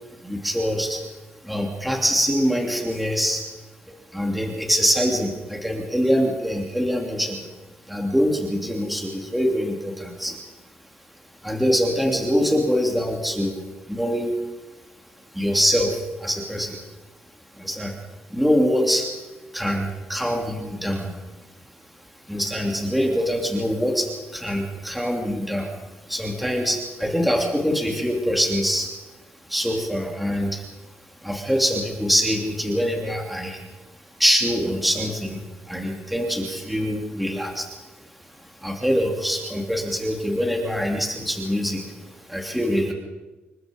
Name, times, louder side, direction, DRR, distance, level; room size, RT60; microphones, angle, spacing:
voice 1, 0.2-1.0 1.4-3.4 3.9-7.5 7.9-10.4 11.4-14.4 15.3-16.8 17.6-18.0 18.3-19.1 19.5-21.2 22.3-25.7 26.0-28.9 29.5-30.7 31.2-33.6 34.2-37.8 38.4-42.9, equal, ahead, 1 dB, 2.9 m, -24 dB
27.5 x 22.0 x 5.3 m, 1.2 s
cardioid pair, 135°, 4 cm